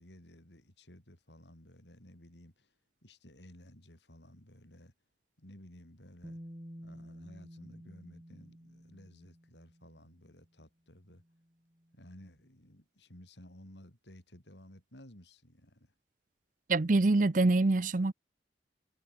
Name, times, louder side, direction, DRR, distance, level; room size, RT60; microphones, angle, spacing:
voice 1, 0.0-2.7 3.0-4.9 5.4-6.4 6.8-11.2 11.9-15.9, left 1 dB, 70° left, 6.4 m, -55 dB
Bass guitar, 6.2-10.2 11.3-11.4, equal, 25° right, 4.9 m, -50 dB
voice 2, 16.7-18.1, right 2 dB, 45° right, 0.6 m, -25 dB
head